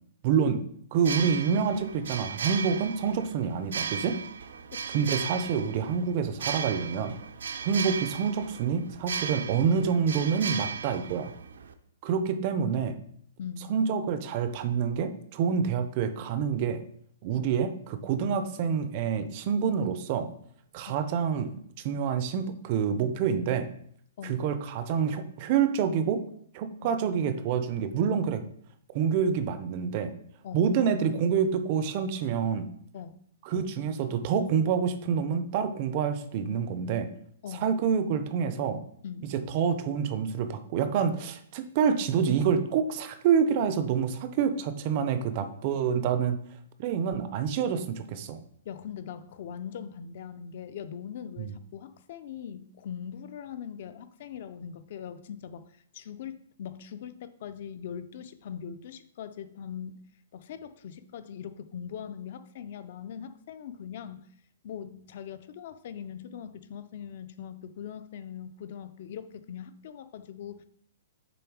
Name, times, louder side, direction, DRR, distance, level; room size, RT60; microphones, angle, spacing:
voice 1, 0.2-0.6 0.9-4.2 4.9-7.1 7.6-11.3 12.0-13.0 13.7-16.8 17.2-20.3 20.7-21.6 21.8-23.7 24.2-26.2 26.5-28.4 28.9-30.1 30.5-32.7 33.4-37.1 37.6-38.8 39.3-46.4 46.8-48.4 51.4-51.5, right 7 dB, 25° right, 10 dB, 0.4 m, -27 dB
sound 1, 0.9-11.7, right 6 dB, 85° right, 0.6 m, -36 dB
voice 2, 4.7-5.1 13.4-13.7 20.9-21.0 24.2-24.4 26.8-26.9 30.4-30.7 32.9-33.2 37.4-37.7 39.0-39.3 48.7-64.3 64.6-70.6, left 8 dB, 40° left, 12 dB, 0.4 m, -41 dB
6.9 x 3.5 x 4.7 m, 0.64 s
hypercardioid pair, 180°, 0 cm